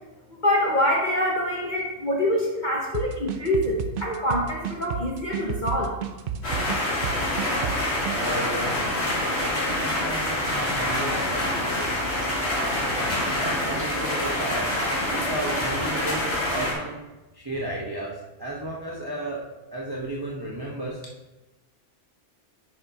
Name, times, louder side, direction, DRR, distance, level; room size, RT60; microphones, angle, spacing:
voice 1, 0.4-5.9, left 1 dB, 40° left, -2 dB, 1.0 m, -25 dB
sound 1, 2.9-8.2, right 7 dB, 60° right, 0.7 m, -31 dB
sound 2, 6.4-16.7, left 1 dB, 60° left, 2.5 m, -26 dB
voice 2, 8.0-8.9 9.5-13.1 13.3-17.0 17.3-19.4 19.7-21.0, right 1 dB, 20° right, -4 dB, 1.0 m, -34 dB
10.0 x 6.7 x 2.8 m, 1.1 s
omnidirectional pair, 1.2 m